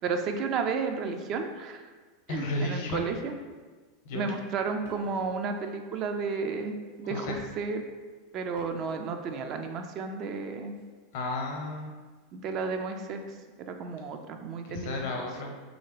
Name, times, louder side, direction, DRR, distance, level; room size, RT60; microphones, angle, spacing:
voice 1, 0.0-1.8 2.3-3.3 4.1-7.8 8.3-10.7 12.3-13.2 13.6-15.1, right 4 dB, 45° right, 6 dB, 0.3 m, -32 dB
voice 2, 2.3-3.0 4.1-4.3 7.0-7.4 11.1-11.9 14.7-15.5, left 2 dB, 65° left, 1 dB, 0.6 m, -33 dB
sound 1, 4.8-5.4 6.8-7.1 8.6-9.1 9.4-9.5 10.7-10.8, right 1 dB, 80° right, 1.3 m, -51 dB
3.1 x 2.7 x 2.9 m, 1.4 s
hypercardioid pair, 100°, 0 cm